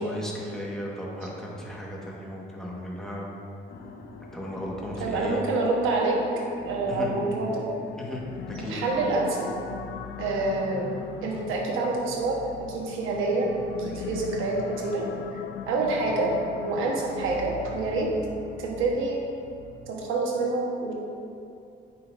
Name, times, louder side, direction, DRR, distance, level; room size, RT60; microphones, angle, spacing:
voice 1, 0.0-3.3 4.3-5.4 6.9-7.1 8.0-8.8, left 1 dB, 5° left, -4 dB, 1.3 m, -36 dB
sound 1, 3.7-19.9, left 3 dB, 55° left, 0.8 m, -43 dB
voice 2, 5.0-6.2 6.6-7.7 8.6-9.5 10.2-13.5 13.8-15.0 15.3-15.4 15.7-16.3 16.6-18.1 18.6-19.2 19.9-20.9, right 3 dB, 90° right, -1 dB, 1.1 m, -27 dB
sound 2, 8.0-17.9, left 8 dB, 75° left, 0.4 m, -41 dB
9.2 x 5.7 x 2.5 m, 2.6 s
cardioid pair, 90°, 20 cm